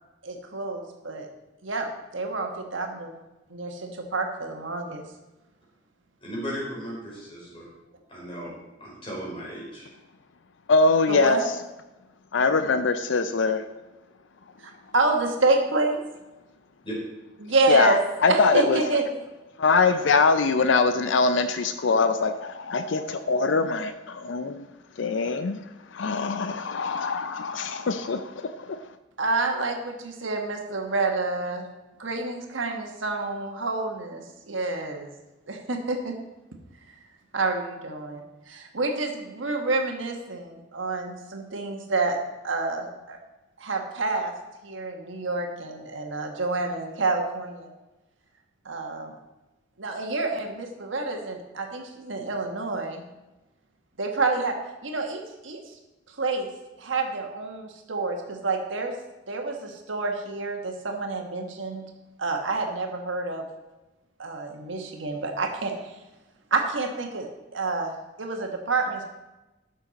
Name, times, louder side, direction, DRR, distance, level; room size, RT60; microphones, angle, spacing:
voice 1, 0.2-1.3 1.6-1.9 2.1-3.1 3.5-5.0 11.1-11.5 14.6-16.0 17.4-18.0 18.3-19.0 29.2-31.7 32.0-35.1 35.5-36.1 37.3-42.2 42.4-43.2 43.6-44.3 44.6-47.7 48.6-49.1 49.8-53.0 54.0-54.5 54.8-55.6 56.1-56.5 56.8-58.9 59.3-61.8 62.2-63.4 64.2-66.0 66.5-69.0, right 3 dB, 85° right, 3 dB, 1.4 m, -28 dB
voice 2, 6.2-7.7 8.1-8.5 8.8-9.9 16.8-17.0, equal, 30° left, -4 dB, 4.0 m, -36 dB
voice 3, 10.7-11.4 12.3-13.6 17.7-18.0 18.2-18.8 19.6-24.7 25.0-25.6 25.9-28.8, left 4 dB, 70° left, 10 dB, 0.5 m, -23 dB
12.5 x 6.4 x 4.1 m, 1.1 s
head